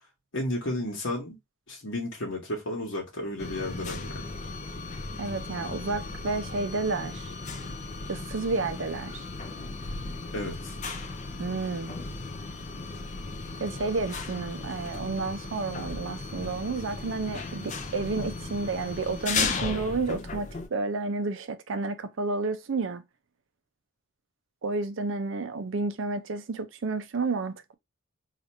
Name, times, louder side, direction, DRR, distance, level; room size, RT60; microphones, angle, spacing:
voice 1, 0.3-1.4 1.7-4.1 10.3-10.7, left 1 dB, 60° left, 1.1 m, -32 dB
sound 1, 3.4-20.7, left 3 dB, 35° left, 0.5 m, -36 dB
voice 2, 5.2-7.3 8.1-9.2 11.4-11.9 13.6-23.0 24.6-27.7, right 3 dB, 60° right, 0.5 m, -31 dB
2.8 x 2.5 x 4.2 m
head